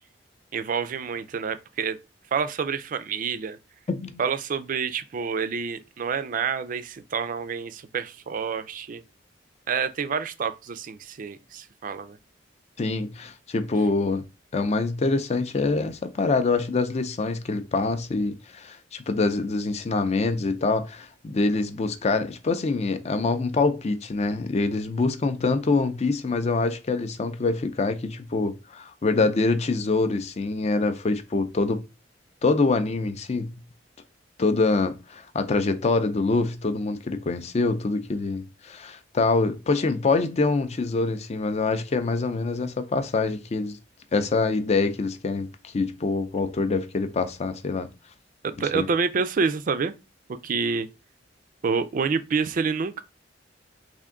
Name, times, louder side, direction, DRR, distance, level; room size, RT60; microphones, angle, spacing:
voice 1, 0.5-2.0 2.3-3.6 4.2-9.0 9.7-12.2 48.4-49.9 50.4-50.9 51.6-53.0, right 5 dB, 45° right, 0.4 m, -28 dB
voice 2, 3.9-4.2 12.8-14.2 14.5-31.8 32.4-33.5 34.4-43.8 44.1-47.9 48.7-48.9, left 3 dB, 35° left, 0.4 m, -25 dB
3.5 x 2.6 x 3.6 m
head